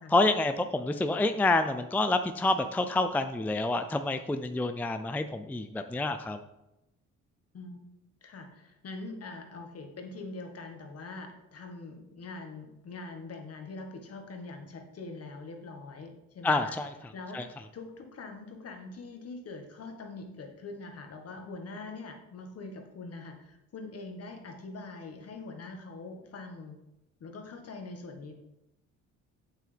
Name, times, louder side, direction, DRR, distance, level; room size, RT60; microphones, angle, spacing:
voice 1, 0.1-6.4 16.4-16.9 17.3-17.5, left 2 dB, 5° left, 8 dB, 0.4 m, -28 dB
voice 2, 8.2-16.7 17.1-26.8 27.2-28.3, left 3 dB, 55° left, 4 dB, 1.6 m, -43 dB
8.3 x 7.5 x 3.5 m, 0.91 s
cardioid pair, 90°, 30 cm